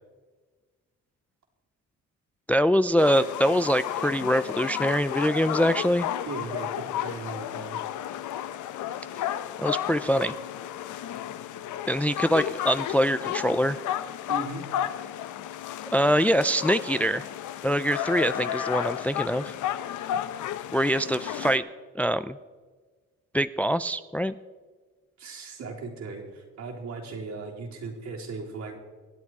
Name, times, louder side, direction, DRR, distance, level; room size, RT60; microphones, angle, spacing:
voice 1, 2.5-6.1 9.6-10.3 11.9-13.8 15.9-17.3 17.6-19.5 20.7-21.6 22.0-22.4 23.3-24.4, equal, 5° left, 13 dB, 0.4 m, -24 dB
sound 1, 3.0-21.6, left 11 dB, 80° left, 0.8 m, -33 dB
voice 2, 6.3-7.8 14.3-14.6 25.2-28.7, right 3 dB, 65° right, -2 dB, 3.8 m, -37 dB
25.5 x 8.5 x 4.7 m, 1.4 s
cardioid pair, 90°, 30 cm